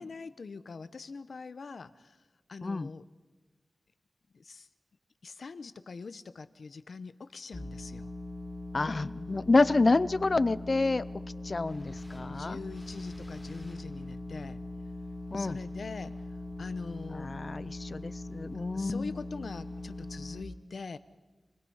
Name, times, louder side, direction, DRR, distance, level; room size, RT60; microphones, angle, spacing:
voice 1, 0.0-2.2 2.5-3.0 4.3-4.7 5.2-8.1 12.3-14.6 15.4-16.1 16.6-17.3 18.7-21.0, left 4 dB, 70° left, 12 dB, 1.0 m, -43 dB
sound 1, 7.5-20.4, left 1 dB, 5° left, 3.5 m, -41 dB
voice 2, 8.7-11.1 11.4-12.6 15.3-15.6 17.1-19.1, left 3 dB, 40° left, 16 dB, 0.6 m, -28 dB
29.5 x 21.0 x 5.6 m, 1.2 s
wide cardioid pair, 115°, 0 cm